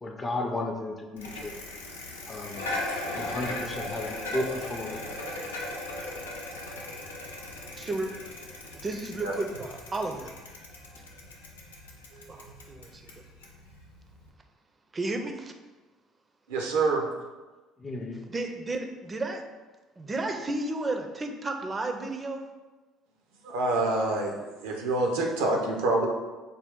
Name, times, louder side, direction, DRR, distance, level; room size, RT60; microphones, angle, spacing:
voice 1, 0.0-1.6 2.3-2.7 3.1-5.2 17.8-18.2, left 2 dB, 25° left, 3 dB, 0.5 m, -34 dB
Bicycle, 1.2-14.3, left 1 dB, 90° left, 0.4 m, -38 dB
voice 2, 7.8-8.1 8.8-10.3 12.3-12.9 14.9-15.5 18.3-19.4 20.0-22.4, right 2 dB, 30° right, 5 dB, 0.5 m, -32 dB
voice 3, 12.1-12.5 16.5-17.0 23.4-26.1, right 2 dB, 75° right, 1 dB, 0.5 m, -27 dB
3.4 x 2.3 x 3.6 m, 1.2 s
hypercardioid pair, 60°, 0 cm